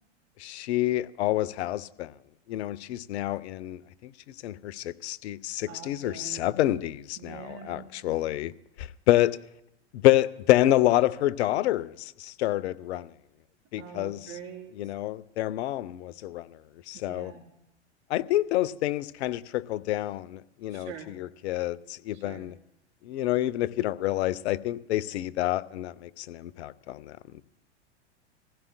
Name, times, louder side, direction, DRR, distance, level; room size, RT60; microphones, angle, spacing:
voice 1, 0.4-2.1 2.5-4.1 4.4-8.5 8.8-9.4 9.9-13.1 13.7-14.3 14.8-16.5 16.9-17.3 18.1-22.6 23.0-27.4, left 15 dB, 70° left, 0.7 m, -28 dB
voice 2, 5.6-6.7 7.2-7.9 13.8-14.9 16.9-17.4 20.7-21.1 22.1-22.5, right 8 dB, 45° right, 3.7 m, -44 dB
26.0 x 15.5 x 2.2 m
hypercardioid pair, 105°, 35 cm